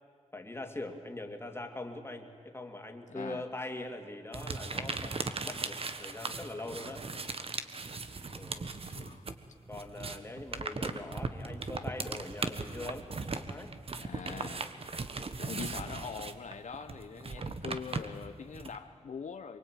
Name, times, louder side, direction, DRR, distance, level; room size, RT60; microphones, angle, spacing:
voice 1, 0.3-7.0 8.4-8.7 9.7-13.1 13.3-13.7, left 2 dB, 20° left, 4 dB, 2.7 m, -42 dB
voice 2, 3.1-3.4 8.8-9.3 14.0-14.7 15.4-19.6, left 6 dB, 65° left, 7 dB, 1.0 m, -43 dB
sound 1, 4.3-9.4 9.7-18.8, right 4 dB, 50° right, 1.4 m, -38 dB
24.0 x 23.5 x 9.2 m, 2.1 s
wide cardioid pair, 85°, 13 cm